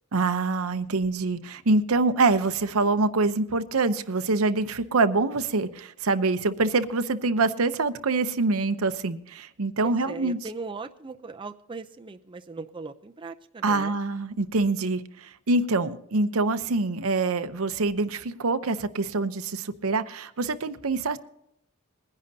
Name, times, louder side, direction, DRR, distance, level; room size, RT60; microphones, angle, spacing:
voice 1, 0.1-10.4 13.6-21.2, right 3 dB, 80° right, 10 dB, 0.8 m, -25 dB
voice 2, 9.8-14.0, right 3 dB, 25° right, 7 dB, 0.5 m, -39 dB
21.5 x 10.5 x 2.8 m, 0.76 s
head